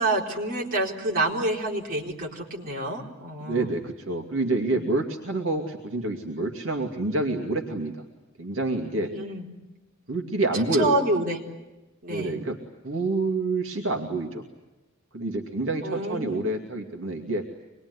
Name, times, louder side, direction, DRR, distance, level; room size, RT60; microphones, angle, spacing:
voice 1, 0.0-3.7 9.0-9.5 10.7-11.4 12.0-12.4 15.8-16.5, right 2 dB, 45° right, -2 dB, 4.2 m, -28 dB
voice 2, 3.4-7.9 8.4-9.1 10.1-11.0 12.1-12.6 12.8-14.4 15.1-17.4, right 2 dB, 75° right, 1 dB, 2.5 m, -27 dB
26.0 x 21.0 x 9.7 m, 1.0 s
head